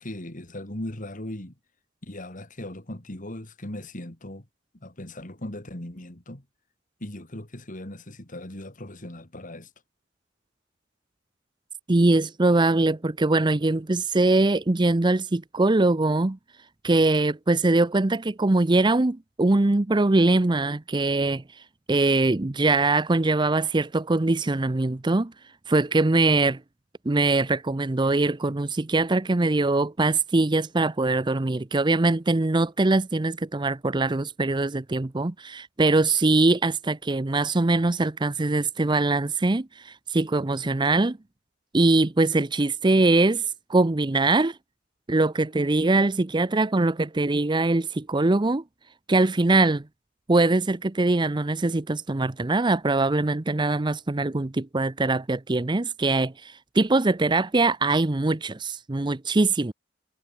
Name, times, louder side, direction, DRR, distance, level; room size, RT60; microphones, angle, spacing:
voice 1, 0.0-1.5 2.0-4.5 4.8-6.4 7.0-9.7, left 1 dB, 40° left, 2.8 m, -38 dB
voice 2, 11.9-16.4 16.8-21.4 21.9-25.3 25.7-26.6 27.1-41.2 41.7-44.6 45.1-48.6 49.1-49.8 50.3-59.7, right 2 dB, 25° right, 0.6 m, -22 dB
head